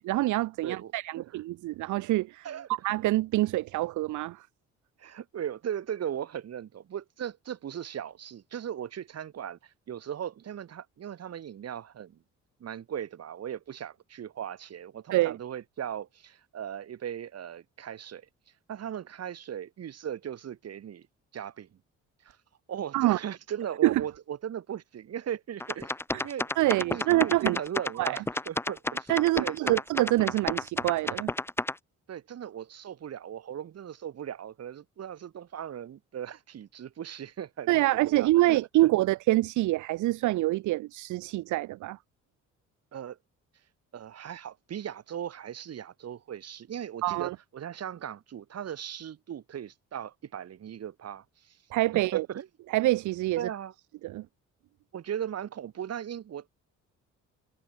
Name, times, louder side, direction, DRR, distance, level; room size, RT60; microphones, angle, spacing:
voice 1, 0.0-2.5 2.8-4.5 15.1-15.4 22.9-23.2 23.8-24.0 26.1-26.3 26.6-27.6 28.0-28.2 29.1-31.3 37.7-42.0 47.0-47.3 51.7-52.3 52.7-53.5 54.0-54.3, right 17 dB, 75° right, 0.6 m, -26 dB
voice 2, 0.6-1.2 2.4-2.7 5.0-12.2 12.6-18.3 18.7-21.1 21.3-21.7 22.2-22.4 22.7-25.9 26.2-29.8 32.1-38.6 42.9-43.2 43.9-51.6 52.1-52.5 53.4-53.7 54.9-56.5, right 9 dB, 55° right, 2.0 m, -38 dB
sound 1, 25.6-31.7, left 1 dB, 10° left, 1.1 m, -31 dB
cardioid pair, 90°, 30 cm